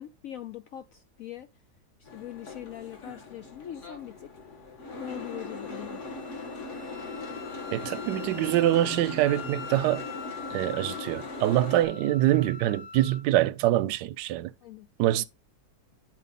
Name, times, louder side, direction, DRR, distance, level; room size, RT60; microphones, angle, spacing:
voice 1, 0.0-1.5 2.0-4.3 5.0-6.1 11.8-12.0 14.6-14.9, left 11 dB, 75° left, 0.7 m, -42 dB
Boat Water vehicle, 2.1-11.8, left 3 dB, 40° left, 1.8 m, -39 dB
Wind instrument woodwind instrument, 5.1-13.2, left 6 dB, 55° left, 1.2 m, -44 dB
voice 2, 7.7-10.0 10.5-14.5 15.0-15.2, right 14 dB, 75° right, 1.2 m, -25 dB
9.6 x 4.5 x 4.0 m
omnidirectional pair, 2.0 m